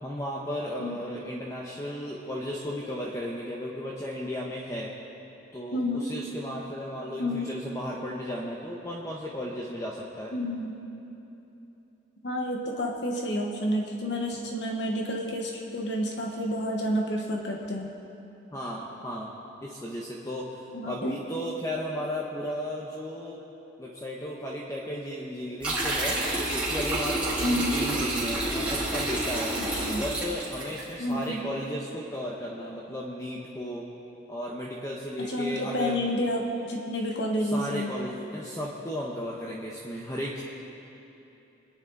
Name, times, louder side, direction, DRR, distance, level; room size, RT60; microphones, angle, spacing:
voice 1, 0.0-4.9 5.5-10.3 18.5-19.3 19.6-23.4 23.8-26.1 26.5-29.5 30.0-33.8 34.3-36.0 37.4-40.4, equal, 15° left, -3 dB, 1.1 m, -35 dB
voice 2, 5.7-6.1 7.2-7.5 10.3-10.8 12.2-17.9 20.7-21.1 27.4-27.8 29.6-30.0 31.0-31.4 35.2-37.9, equal, 60° left, 0 dB, 1.4 m, -30 dB
sound 1, 25.6-30.8, right 1 dB, 5° right, 3.4 m, -29 dB
25.5 x 10.5 x 4.1 m, 3.0 s
head